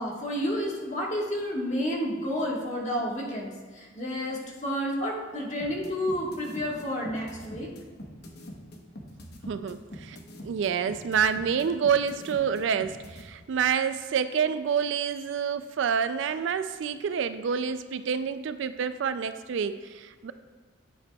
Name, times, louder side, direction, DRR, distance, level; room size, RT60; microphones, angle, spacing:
voice 1, 0.0-7.7, equal, 35° left, -2 dB, 1.5 m, -30 dB
sound 1, 5.6-13.2, left 1 dB, 55° left, 1.0 m, -43 dB
voice 2, 9.5-10.2 10.4-20.3, right 7 dB, 65° right, 12 dB, 0.3 m, -28 dB
9.6 x 8.5 x 2.3 m, 1.5 s
head